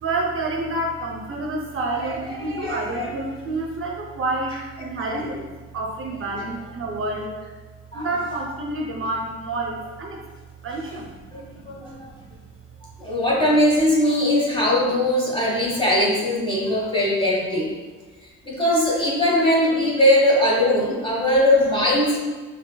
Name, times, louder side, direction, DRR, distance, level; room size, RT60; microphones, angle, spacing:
voice 1, 0.0-5.5 5.7-7.4 7.9-10.2 10.6-11.1 11.6-12.1, right 2 dB, 45° right, 0 dB, 0.6 m, -28 dB
voice 2, 2.4-3.1 5.0-5.3 7.9-8.1 11.3-11.9 13.0-17.7 18.4-22.2, left 1 dB, 15° left, -4 dB, 1.3 m, -20 dB
6.0 x 2.9 x 2.2 m, 1.4 s
cardioid pair, 90°, 30 cm